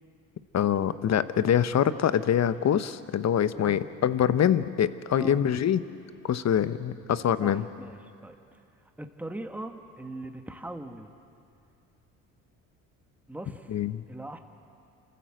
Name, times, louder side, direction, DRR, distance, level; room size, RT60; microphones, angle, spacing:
voice 1, 0.5-5.8 6.2-7.6 13.7-14.0, left 9 dB, 40° left, 14 dB, 1.0 m, -24 dB
voice 2, 5.1-5.4 7.4-8.6 9.0-11.1 13.3-13.8 14.1-14.4, right 1 dB, 5° right, 5 dB, 1.8 m, -40 dB
28.5 x 14.5 x 7.8 m, 2.5 s
hypercardioid pair, 60°, 40 cm